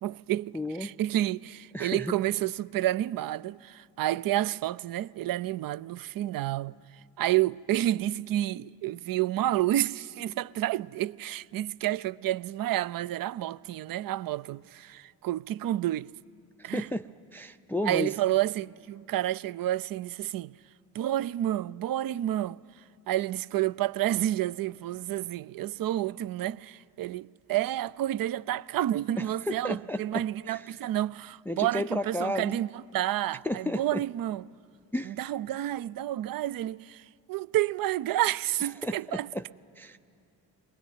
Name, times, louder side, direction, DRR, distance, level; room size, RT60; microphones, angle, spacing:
voice 1, 0.0-6.7 7.2-16.1 16.6-16.9 17.8-20.5 20.9-22.6 23.1-34.4 35.0-39.3, right 14 dB, 45° right, 0.5 m, -30 dB
voice 2, 0.5-0.9 1.7-2.2 16.6-18.1 29.2-30.8 31.5-32.6 33.4-34.0 34.9-35.2 38.8-39.5 39.8-40.0, left 1 dB, 5° left, 0.5 m, -33 dB
22.0 x 19.5 x 9.3 m
hypercardioid pair, 45°, 49 cm